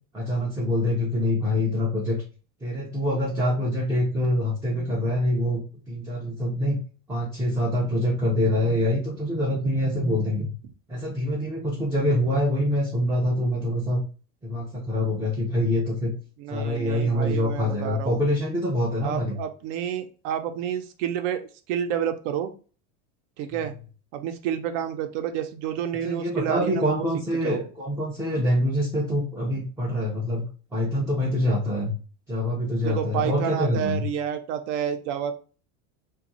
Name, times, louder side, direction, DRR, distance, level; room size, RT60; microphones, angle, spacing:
voice 1, 0.1-2.2 2.6-5.6 5.9-6.8 7.1-10.5 10.9-14.0 14.4-16.1 16.5-19.4 23.5-23.6 26.0-30.4 30.7-31.9 32.3-34.0, left 1 dB, 10° right, -3 dB, 0.3 m, -25 dB
voice 2, 16.4-18.2 19.0-22.5 23.4-23.7 24.1-27.1 27.4-27.6 32.8-35.3, right 9 dB, 75° right, 8 dB, 0.6 m, -29 dB
2.5 x 2.3 x 4.0 m, 0.37 s
cardioid pair, 145°, 36 cm